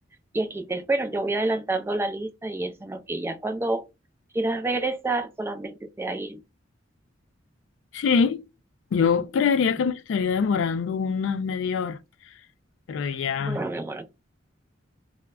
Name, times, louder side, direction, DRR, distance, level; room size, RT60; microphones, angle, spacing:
voice 1, 0.3-3.8 4.3-6.4 13.4-14.1, right 2 dB, 15° right, 0.3 m, -28 dB
voice 2, 7.9-8.4 8.9-12.0 12.9-13.6, left 6 dB, 80° left, 0.3 m, -24 dB
2.2 x 2.1 x 3.5 m
head